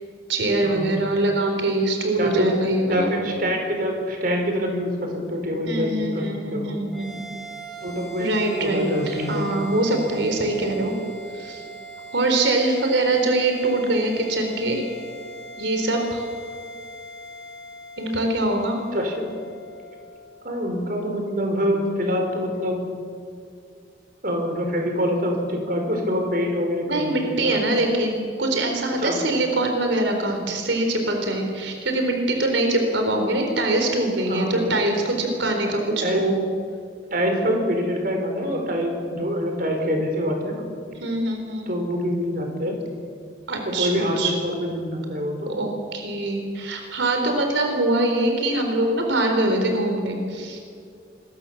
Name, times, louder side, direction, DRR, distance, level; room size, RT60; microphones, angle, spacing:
voice 1, 0.3-3.2 5.7-7.2 8.2-10.9 11.3-11.6 12.1-14.8 15.6-16.2 18.0-18.8 26.9-36.4 41.0-41.7 43.5-44.3 45.5-50.6, right 2 dB, 85° right, 3 dB, 4.0 m, -23 dB
voice 2, 2.2-2.5 2.9-6.7 7.8-8.3 8.6-9.5 18.9-19.3 20.4-22.8 24.2-27.6 29.0-29.2 34.3-34.6 36.0-36.2 37.1-40.7 41.7-42.8 43.6-45.5, equal, 50° right, 2 dB, 5.0 m, -25 dB
sound 1, 6.9-21.5, right 2 dB, ahead, 6.5 m, -41 dB
27.0 x 22.5 x 7.3 m, 2.2 s
head